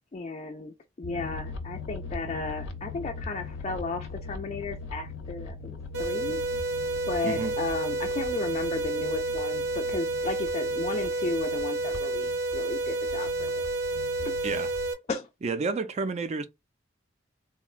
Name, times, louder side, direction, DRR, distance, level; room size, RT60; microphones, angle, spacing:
voice 1, 0.1-6.4 7.1-13.6 14.2-14.4 15.1-15.3, left 3 dB, 35° left, 0.4 m, -34 dB
sound 1, 1.0-14.9, left 3 dB, 85° left, 0.6 m, -41 dB
sound 2, 5.9-14.9, right 2 dB, 60° right, 0.7 m, -30 dB
voice 2, 7.2-7.6 14.4-14.7 15.4-16.5, right 4 dB, 35° right, 0.4 m, -30 dB
3.6 x 2.1 x 2.4 m
head